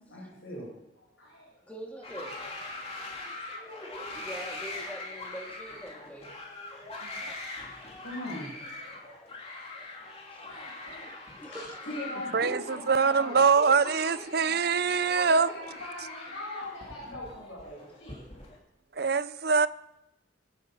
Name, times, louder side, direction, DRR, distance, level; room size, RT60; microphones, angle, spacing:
voice 1, 0.1-1.6 2.4-2.5 3.3-3.7 4.2-4.6 5.3-5.4 7.3-7.4 8.0-9.2 9.7-10.1 10.4-11.1 11.5-14.7 15.1-18.2, left 1 dB, 70° left, 7.8 m, -42 dB
voice 2, 1.7-2.4 3.5-6.3 7.3-7.4 11.4-11.6, right 1 dB, 5° left, 2.7 m, -43 dB
sound 1, 2.0-18.6, left 2 dB, 30° left, 2.6 m, -42 dB
voice 3, 12.3-15.5 19.0-19.7, right 5 dB, 50° right, 0.6 m, -24 dB
24.0 x 8.7 x 5.7 m
head